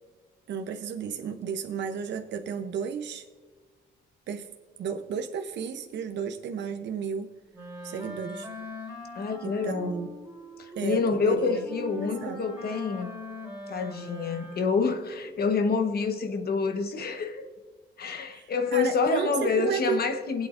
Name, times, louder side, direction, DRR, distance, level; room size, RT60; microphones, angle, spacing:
voice 1, 0.5-3.2 4.3-4.5 4.8-7.3 7.8-8.5 9.4-10.1 10.7-11.7 11.9-12.4 18.3-20.0, right 7 dB, 65° right, 0.8 m, -33 dB
Wind instrument woodwind instrument, 7.5-15.0, left 1 dB, 15° right, 3.3 m, -42 dB
voice 2, 9.1-9.9 10.6-13.1 13.7-17.4 18.0-20.5, left 5 dB, 50° left, 1.1 m, -27 dB
19.5 x 8.4 x 2.5 m
cardioid pair, 90°, 20 cm